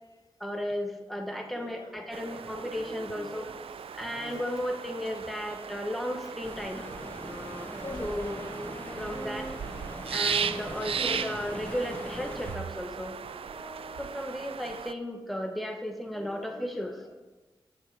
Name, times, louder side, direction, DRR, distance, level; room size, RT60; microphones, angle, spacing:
voice 1, 0.4-3.5 3.9-6.9 8.0-8.5 8.9-9.5 10.1-13.2 14.0-17.0, equal, ahead, 3 dB, 1.1 m, -34 dB
voice 2, 1.5-3.6 4.0-4.5 7.8-8.1 9.7-10.8 16.1-17.1, left 3 dB, 40° left, 4 dB, 1.0 m, -47 dB
sound 1, 2.1-14.9, right 7 dB, 75° right, 0.4 m, -37 dB
sound 2, 6.4-12.6, left 1 dB, 15° left, 1.6 m, -42 dB
sound 3, 6.8-14.3, right 1 dB, 30° right, 1.7 m, -45 dB
7.5 x 7.2 x 4.7 m, 1.2 s
cardioid pair, 55°, 10 cm